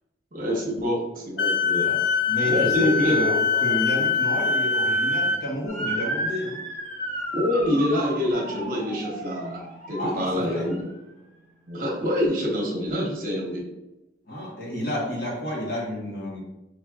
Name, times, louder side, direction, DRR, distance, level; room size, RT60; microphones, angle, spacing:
voice 1, 0.3-1.9 2.4-3.8 7.3-10.9 11.7-13.6, left 1 dB, 50° right, -2 dB, 1.0 m, -26 dB
Wind instrument woodwind instrument, 1.4-5.4, left 5 dB, 80° left, 0.5 m, -23 dB
voice 2, 2.3-6.6 10.0-10.7 14.3-16.4, left 1 dB, 55° left, -3 dB, 1.3 m, -30 dB
Motor vehicle (road) / Siren, 5.7-10.9, right 1 dB, 15° left, 1.4 m, -33 dB
5.9 x 3.2 x 2.4 m, 0.98 s
head